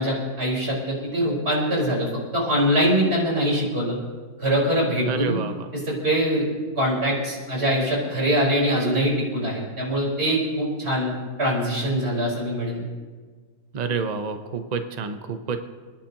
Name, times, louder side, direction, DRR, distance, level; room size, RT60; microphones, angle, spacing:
voice 1, 0.0-2.1 2.3-4.0 4.4-5.3 5.8-6.4 6.8-11.1 11.4-12.8, equal, 35° right, -4 dB, 4.7 m, -23 dB
voice 2, 5.1-5.7 13.7-15.6, right 5 dB, 70° right, 7 dB, 0.4 m, -28 dB
27.5 x 10.5 x 2.9 m, 1.5 s
omnidirectional pair, 1.9 m